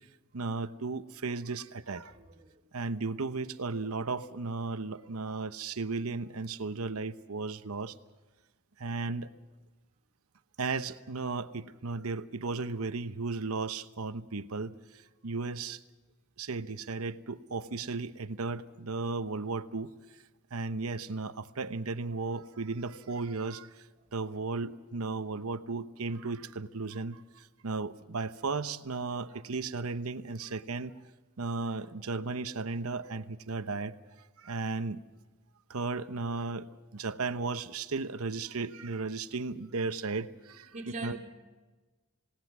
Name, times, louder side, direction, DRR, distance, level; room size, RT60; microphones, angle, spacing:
voice 1, 0.3-2.1 2.7-7.9 8.8-9.3 10.6-14.7 15.2-15.8 16.4-19.9 20.5-23.7 24.1-27.2 27.6-30.9 31.4-33.9 34.4-35.0 35.7-36.7 36.9-40.7 41.0-41.2, right 3 dB, 80° right, 0.9 m, -35 dB
voice 2, 2.2-2.6 40.7-41.2, right 3 dB, 35° right, 2.9 m, -42 dB
27.0 x 18.5 x 6.1 m
head